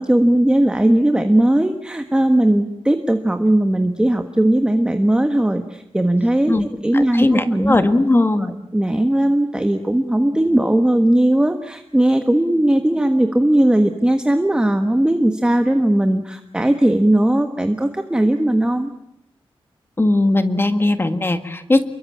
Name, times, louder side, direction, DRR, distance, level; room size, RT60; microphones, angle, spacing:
voice 1, 0.0-7.8 8.7-18.9, right 1 dB, 10° right, 7 dB, 1.4 m, -18 dB
voice 2, 6.9-8.5 20.0-21.9, left 2 dB, 25° left, 9 dB, 1.8 m, -18 dB
28.5 x 22.5 x 8.6 m, 0.78 s
wide cardioid pair, 150°, 10 cm